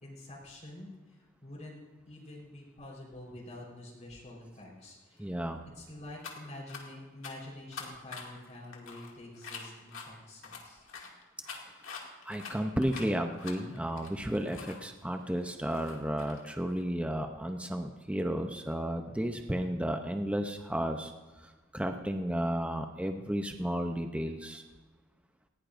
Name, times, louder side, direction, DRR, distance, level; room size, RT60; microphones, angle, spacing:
voice 1, 0.0-1.8 2.1-5.3 5.8-10.9, left 1 dB, 35° left, -3 dB, 4.3 m, -47 dB
voice 2, 5.2-5.6 12.2-21.1 21.4-24.6, equal, 5° right, 5 dB, 0.6 m, -33 dB
sound 1, 6.2-6.3 6.7-6.8 7.2-7.3 7.7-10.1 10.4-14.8 15.2-16.8, left 5 dB, 75° left, 2.3 m, -45 dB
19.5 x 16.0 x 2.6 m, 1.3 s
head